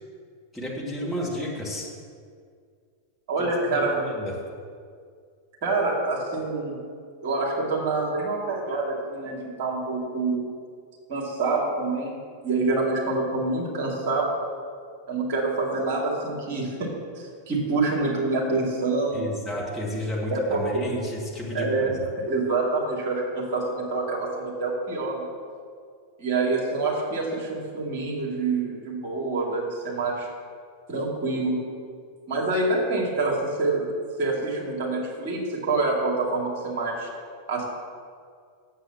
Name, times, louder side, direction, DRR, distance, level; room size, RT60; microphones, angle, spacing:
voice 1, 0.5-1.9 3.7-4.3 19.1-22.0, left 1 dB, ahead, -5 dB, 2.2 m, -32 dB
voice 2, 3.3-4.0 5.6-6.8 7.2-10.4 11.1-12.2 12.4-14.3 15.1-16.7 17.2-19.2 20.3-20.6 21.5-25.3 26.2-30.3 30.9-31.6 32.3-33.9 34.2-37.1 37.5-37.7, right 3 dB, 45° right, -2 dB, 2.5 m, -26 dB
8.2 x 7.8 x 7.2 m, 2.1 s
figure-of-eight pair, 90°, 0 cm